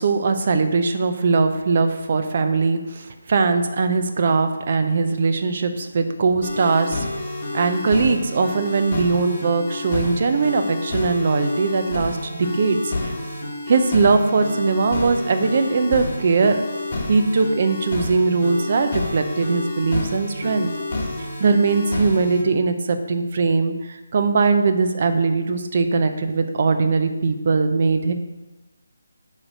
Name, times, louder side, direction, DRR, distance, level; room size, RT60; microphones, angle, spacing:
voice 1, 0.0-13.2 13.7-16.6 17.1-20.7 21.2-28.1, right 4 dB, 45° right, 7 dB, 0.7 m, -20 dB
sound 1, 6.4-22.4, left 2 dB, 35° left, 1.5 m, -29 dB
8.7 x 3.2 x 6.4 m, 1.1 s
figure-of-eight pair, 160°, 0 cm